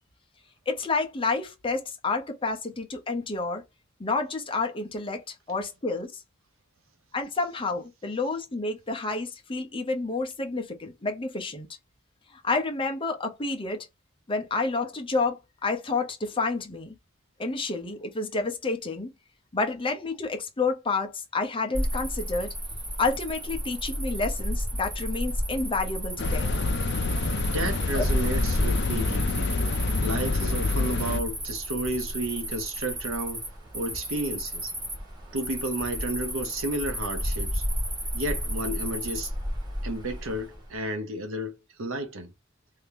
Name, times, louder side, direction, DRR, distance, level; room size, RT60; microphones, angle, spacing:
voice 1, 0.7-3.6 4.0-6.2 7.1-11.7 12.3-13.9 14.3-16.9 17.4-19.1 19.5-22.5 23.0-26.5 27.9-28.0, left 3 dB, 25° left, 0.8 m, -29 dB
Cricket, 21.7-40.7, equal, 20° right, 1.6 m, -32 dB
sound 1, 26.2-31.2, left 3 dB, 55° left, 0.5 m, -27 dB
voice 2, 27.4-29.5 30.0-33.4 33.7-34.7 35.3-37.6 38.1-39.3 39.8-42.3, right 1 dB, 80° right, 0.8 m, -32 dB
3.4 x 2.8 x 3.4 m
head